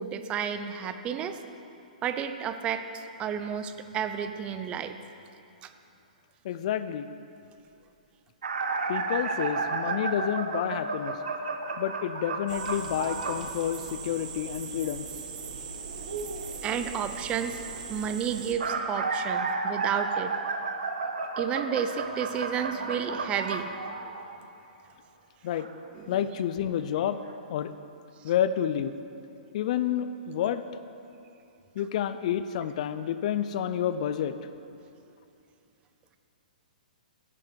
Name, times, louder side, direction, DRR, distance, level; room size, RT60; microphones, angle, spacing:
voice 1, 0.0-1.4 2.0-2.9 3.2-5.0 5.6-5.7 16.6-17.6 17.9-20.3 21.4-23.7 26.0-26.2, right 8 dB, 25° right, 9 dB, 0.5 m, -31 dB
voice 2, 6.4-7.1 8.9-11.1 11.8-15.1 25.4-25.7 26.1-27.2 27.5-27.7 28.2-28.9 29.5-30.6 31.8-34.4, left 10 dB, 50° left, 12 dB, 0.5 m, -29 dB
sound 1, 8.4-13.5 18.3-24.5 25.6-25.7 26.8-26.9 27.2-27.3, right 4 dB, 80° right, 1.0 m, -32 dB
sound 2, 12.5-18.5, right 5 dB, 60° right, 1.3 m, -39 dB
10.5 x 9.0 x 4.6 m, 2.7 s
hypercardioid pair, 130°, 5 cm